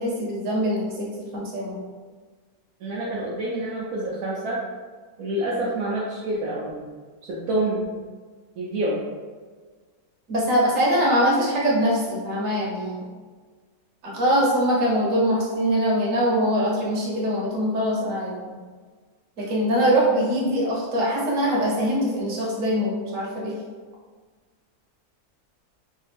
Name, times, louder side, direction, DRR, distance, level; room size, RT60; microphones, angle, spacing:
voice 1, 0.0-1.8 10.3-13.0 14.1-18.5 19.4-23.5, equal, 60° right, -5 dB, 1.3 m, -23 dB
voice 2, 2.8-4.6 5.2-6.8 7.3-7.8 8.6-9.0, right 1 dB, 75° right, -6 dB, 1.1 m, -27 dB
3.1 x 2.7 x 3.4 m, 1.5 s
omnidirectional pair, 1.6 m